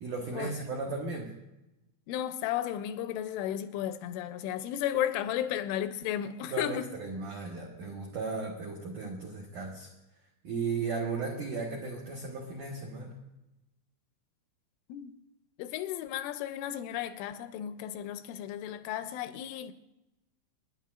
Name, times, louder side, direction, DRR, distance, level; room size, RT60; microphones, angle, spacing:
voice 1, 0.0-1.3 6.5-9.9 10.4-13.1, right 4 dB, 90° right, 1.7 m, -35 dB
voice 2, 2.1-6.9 14.9-15.1 15.6-19.7, left 11 dB, 85° left, 2.9 m, -34 dB
27.5 x 11.0 x 2.4 m
omnidirectional pair, 5.6 m